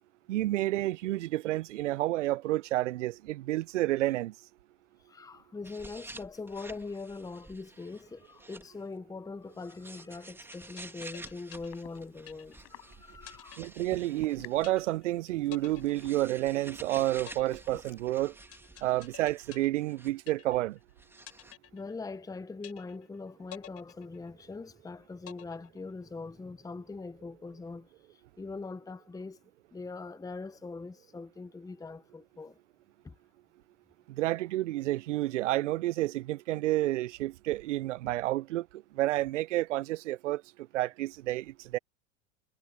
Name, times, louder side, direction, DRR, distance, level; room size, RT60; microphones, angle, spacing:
voice 1, 0.3-4.3 13.6-18.3 18.8-20.8 34.1-38.7 38.9-40.4 40.7-41.8, right 16 dB, 80° right, 0.6 m, -30 dB
voice 2, 5.0-13.7 18.8-18.9 21.7-29.4 29.7-32.6 33.0-33.1, left 3 dB, 10° left, 0.9 m, -42 dB
sound 1, 5.6-8.8 9.5-14.8 15.5-20.3 20.6-21.5, right 2 dB, 5° right, 2.0 m, -50 dB
sound 2, 10.5-12.8 13.3-14.3 14.6-15.2 15.5-16.8 17.3-20.8 21.3-22.3 22.6-23.2 23.5-24.8 25.3-26.3, left 11 dB, 40° left, 4.3 m, -51 dB
sound 3, 11.5-18.1, left 38 dB, 60° left, 5.2 m, -56 dB
hypercardioid pair, 80°, 36 cm